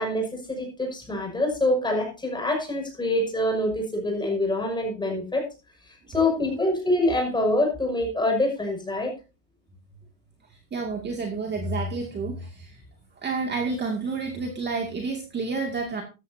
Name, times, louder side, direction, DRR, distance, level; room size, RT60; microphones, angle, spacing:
voice 1, 0.0-5.4 5.9-9.1, left 1 dB, 10° left, 2 dB, 6.4 m, -25 dB
voice 2, 6.3-6.6 10.7-12.8 13.2-16.0, right 3 dB, 20° right, 2 dB, 2.4 m, -30 dB
14.0 x 13.5 x 2.8 m, 0.30 s
supercardioid pair, 140°, 47 cm